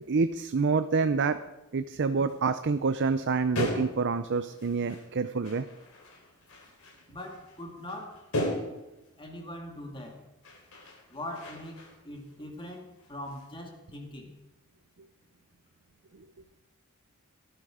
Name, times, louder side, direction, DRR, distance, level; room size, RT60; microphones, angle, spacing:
voice 1, 0.1-1.4 1.7-5.7, right 4 dB, 55° right, 11 dB, 0.6 m, -27 dB
sound 1, 2.3-2.4 2.8-5.1 5.4-9.1 10.0-10.1 10.4-12.3 12.6-13.5, left 1 dB, 70° left, 3.9 m, -38 dB
voice 2, 7.1-8.2 9.2-10.2 11.1-14.3, left 1 dB, 25° left, 1 dB, 2.1 m, -41 dB
17.5 x 11.5 x 4.9 m, 1.0 s
head